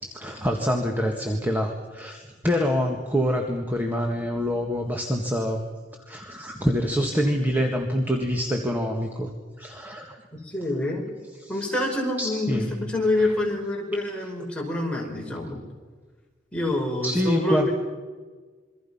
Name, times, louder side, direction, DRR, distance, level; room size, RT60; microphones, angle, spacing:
voice 1, 0.0-5.6 6.1-9.3 9.6-10.2 11.4-11.7 12.2-12.7 13.2-13.3 17.0-17.7, equal, 10° right, 2 dB, 1.8 m, -26 dB
voice 2, 10.4-11.1 11.5-15.6 16.5-17.7, left 1 dB, 5° left, -1 dB, 5.2 m, -26 dB
27.5 x 23.5 x 5.7 m, 1.4 s
head